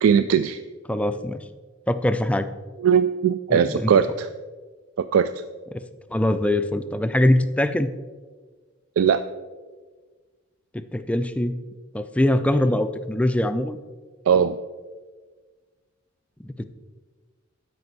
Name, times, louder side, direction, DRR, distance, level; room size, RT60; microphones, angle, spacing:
voice 1, 0.0-0.6 2.8-4.3 5.1-5.3 9.0-9.2 14.3-14.6, right 7 dB, 85° right, 11 dB, 0.3 m, -19 dB
voice 2, 0.9-1.4 1.9-2.5 3.5-3.9 5.7-5.8 6.1-7.9 10.7-11.5 11.9-13.8 16.4-16.7, left 1 dB, 5° left, 10 dB, 0.3 m, -22 dB
12.0 x 5.4 x 4.1 m, 1.4 s
head